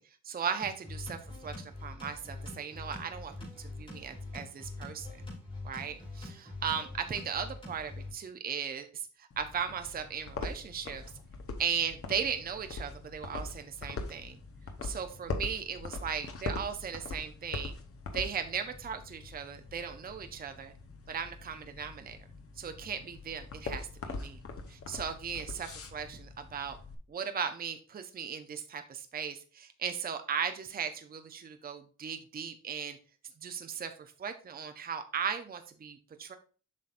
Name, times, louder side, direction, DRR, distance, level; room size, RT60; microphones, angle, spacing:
voice 1, 0.2-3.3 3.6-5.2 5.6-8.9 9.4-11.0 11.6-14.4 14.8-17.7 18.1-20.7 21.1-22.2 22.6-24.4 24.7-26.8 27.1-33.0 33.4-36.3, right 7 dB, 30° right, 7 dB, 0.5 m, -37 dB
sound 1, 0.6-8.1, left 2 dB, 20° left, 3.4 m, -44 dB
sound 2, 9.3-27.0, left 3 dB, 50° left, 0.9 m, -42 dB
7.5 x 5.6 x 2.5 m, 0.38 s
wide cardioid pair, 170°, 29 cm